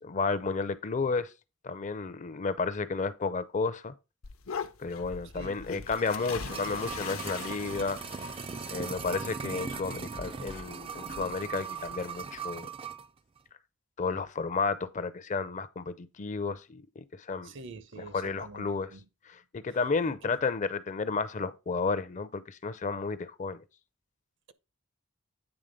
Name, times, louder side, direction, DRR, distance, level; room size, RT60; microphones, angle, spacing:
voice 1, 0.0-1.3 1.6-3.9 4.8-8.0 8.7-12.7 14.0-17.5 18.0-18.9 19.3-23.6, left 4 dB, 35° left, 0.5 m, -32 dB
sound 1, 4.2-12.5, left 6 dB, 75° left, 0.7 m, -43 dB
voice 2, 5.3-5.8 17.4-18.7 18.9-19.0 20.1-20.4, right 3 dB, 60° right, 0.7 m, -46 dB
sound 2, 5.6-13.1 13.4-13.5, right 6 dB, 25° right, 0.3 m, -39 dB
8.9 x 3.7 x 5.1 m
head